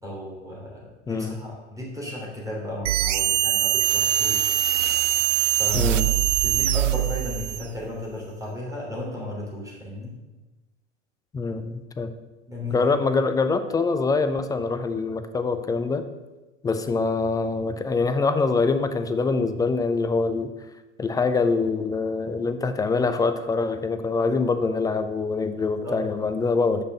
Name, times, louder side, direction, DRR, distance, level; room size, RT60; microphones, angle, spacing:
voice 1, 0.0-4.5 5.6-6.0 6.4-10.1 12.5-12.9 25.6-26.0, left 1 dB, 10° right, -4 dB, 2.9 m, -34 dB
voice 2, 1.1-1.4 5.7-6.1 11.3-12.1 12.7-16.0 16.6-20.5 21.0-26.8, left 4 dB, 10° left, 10 dB, 0.4 m, -24 dB
sound 1, 2.8-7.7, right 12 dB, 75° right, 0.5 m, -22 dB
6.6 x 5.9 x 6.5 m, 1.1 s
figure-of-eight pair, 85°, 37 cm